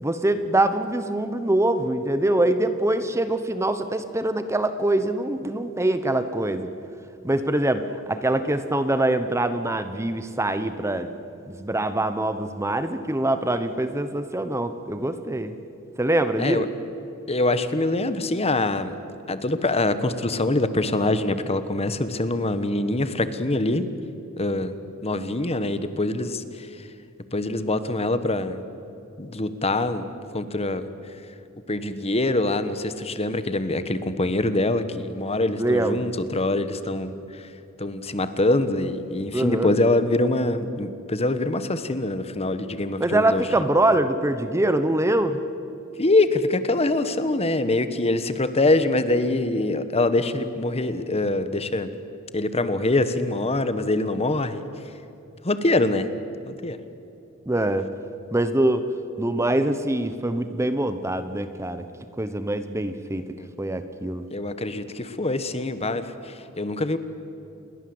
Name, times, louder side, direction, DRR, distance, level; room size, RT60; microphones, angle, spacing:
voice 1, 0.0-6.7 7.2-11.1 11.5-15.5 16.0-16.7 35.6-36.0 39.3-39.7 43.0-45.4 57.5-57.9 58.3-58.9 59.2-61.8 62.2-63.2 63.6-64.3, right 1 dB, 15° right, 10 dB, 1.0 m, -24 dB
voice 2, 17.3-18.9 19.3-23.9 24.4-24.7 25.0-26.4 27.3-28.6 29.2-30.1 30.3-30.9 31.7-37.1 37.8-43.6 46.0-51.9 52.3-54.6 55.4-56.1 56.5-56.8 63.3-63.5 64.3-67.0, left 2 dB, 30° left, 11 dB, 1.3 m, -24 dB
29.0 x 21.5 x 7.9 m, 2.8 s
head